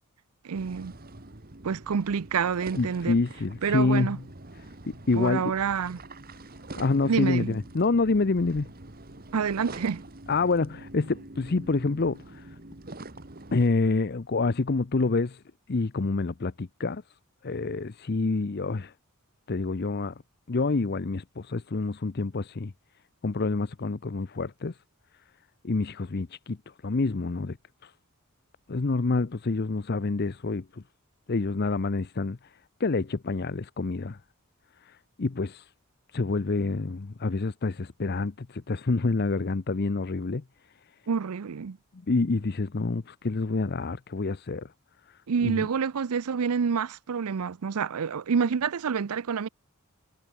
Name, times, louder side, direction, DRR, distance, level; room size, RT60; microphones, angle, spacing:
voice 1, 0.4-0.9 1.6-3.2 3.6-4.2 5.1-6.0 7.0-7.6 9.3-10.0 41.1-41.8 45.3-49.5, right 6 dB, 80° right, 0.5 m, -28 dB
sound 1, 0.5-13.7, right 2 dB, 40° right, 1.8 m, -45 dB
voice 2, 2.7-4.2 4.9-5.5 6.8-8.7 10.3-12.5 13.5-15.4 15.7-17.0 17.4-18.9 19.5-20.1 20.5-22.7 23.2-24.8 25.6-26.6 26.8-27.6 27.8-27.9 28.7-30.8 31.3-32.4 32.8-34.2 34.9-35.7 36.1-40.4 42.1-44.7 45.4-45.7, left 3 dB, 45° left, 0.6 m, -27 dB
head